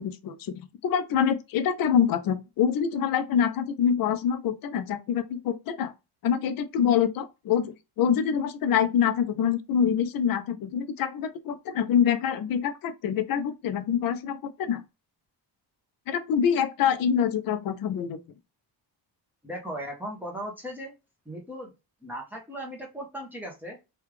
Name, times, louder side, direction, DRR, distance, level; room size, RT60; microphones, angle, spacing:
voice 1, 0.0-5.9 6.2-14.8 16.1-18.2, left 8 dB, 50° left, 0.5 m, -25 dB
voice 2, 19.4-20.9 21.3-21.7 22.0-23.8, equal, 5° right, 0.7 m, -37 dB
3.3 x 2.4 x 3.1 m
cardioid pair, 160°, 44 cm